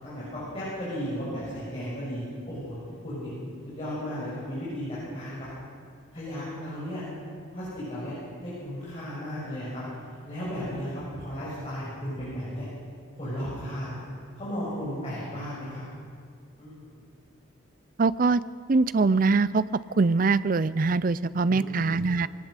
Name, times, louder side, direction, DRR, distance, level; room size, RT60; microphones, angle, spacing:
voice 1, 0.0-2.8 3.0-3.3 3.6-5.5 6.1-7.0 7.5-8.1 8.4-9.8 10.2-12.6 13.2-14.0 14.4-15.8 16.6-16.9 21.5-21.9, equal, 30° left, -10 dB, 6.9 m, -35 dB
voice 2, 18.0-18.4 18.7-19.6 20.0-22.3, right 4 dB, 45° right, 17 dB, 0.5 m, -23 dB
21.5 x 18.5 x 6.7 m, 2.1 s
head